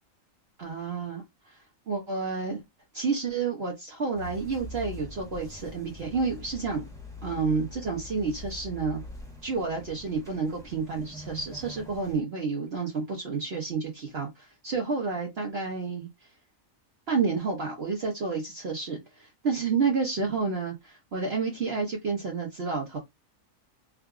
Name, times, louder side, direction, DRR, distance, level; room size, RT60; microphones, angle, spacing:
voice 1, 0.6-1.2 1.9-2.6 2.9-6.9 7.2-9.0 9.4-16.1 17.1-23.0, right 4 dB, 55° right, 1.0 m, -30 dB
sound 1, 4.1-12.2, left 2 dB, 5° left, 0.7 m, -44 dB
4.7 x 2.4 x 2.3 m
omnidirectional pair, 1.4 m